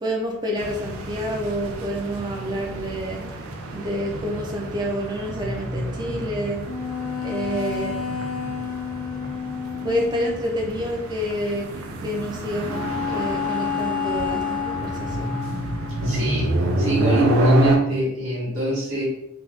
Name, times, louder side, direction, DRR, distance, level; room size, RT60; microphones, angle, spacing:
voice 1, 0.0-3.2 3.7-6.6 7.2-8.0 9.8-11.7 12.0-12.8 13.1-15.4, equal, 20° right, 0 dB, 0.4 m, -28 dB
sound 1, 0.6-17.8, right 1 dB, 85° right, 0.4 m, -28 dB
sound 2, 6.6-10.3 12.7-16.6, left 7 dB, 85° left, 0.6 m, -30 dB
voice 2, 16.0-19.0, right 2 dB, 70° right, -6 dB, 0.9 m, -24 dB
2.6 x 2.3 x 3.3 m, 0.83 s
head